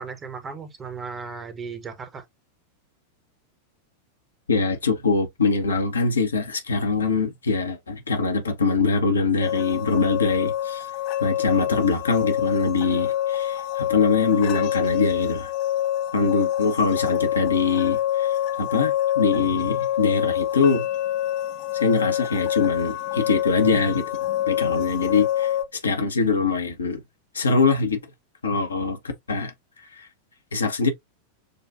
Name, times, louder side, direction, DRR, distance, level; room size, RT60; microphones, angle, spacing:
voice 1, 0.0-2.2, right 5 dB, 20° right, 0.9 m, -36 dB
voice 2, 4.5-10.9 11.2-15.5 16.1-20.8 21.7-24.0 24.5-27.0 27.3-28.0 28.4-29.0 29.3-29.5 29.9-30.1 30.5-30.9, left 4 dB, 75° left, 0.9 m, -23 dB
sound 1, 9.4-25.6, left 12 dB, 45° left, 0.5 m, -26 dB
6.6 x 2.4 x 2.5 m
figure-of-eight pair, 90°, 0 cm